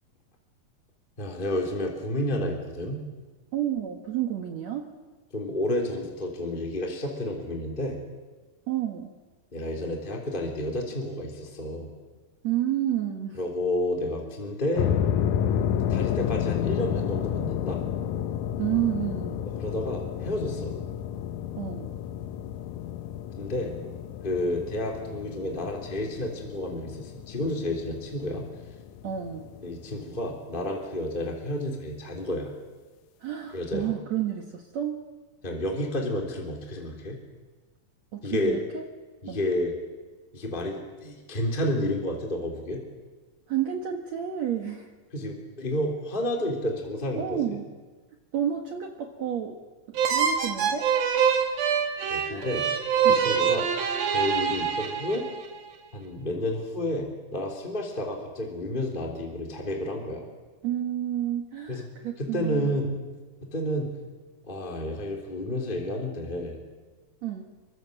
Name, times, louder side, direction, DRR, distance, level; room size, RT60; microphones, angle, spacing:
voice 1, 1.2-3.0 5.3-8.0 9.5-11.9 13.4-14.9 15.9-17.8 19.6-20.7 23.4-23.7 24.2-28.5 29.6-32.5 33.5-33.9 35.4-37.2 38.2-38.6 39.2-39.7 40.3-42.8 45.1-47.6 52.1-52.7 53.1-53.7 54.1-55.3 55.9-60.2 61.7-61.8 62.2-62.9 63.5-63.9 64.4-66.6, left 1 dB, 15° left, 0 dB, 3.1 m, -30 dB
voice 2, 3.5-4.9 8.7-9.1 12.4-13.4 18.6-19.4 21.6-21.9 29.0-29.4 33.2-35.0 38.1-38.8 39.3-39.4 43.5-44.9 47.2-47.6 48.3-49.6 50.1-50.9 52.2-52.5 53.0-53.2 60.6-62.8 67.2-67.4, right 11 dB, 55° right, 4 dB, 2.4 m, -30 dB
sound 1, 14.8-30.0, left 9 dB, 70° left, 2.1 m, -31 dB
sound 2, 49.9-55.5, right 7 dB, 75° right, 3.9 m, -25 dB
27.0 x 23.5 x 7.9 m, 1.3 s
omnidirectional pair, 4.2 m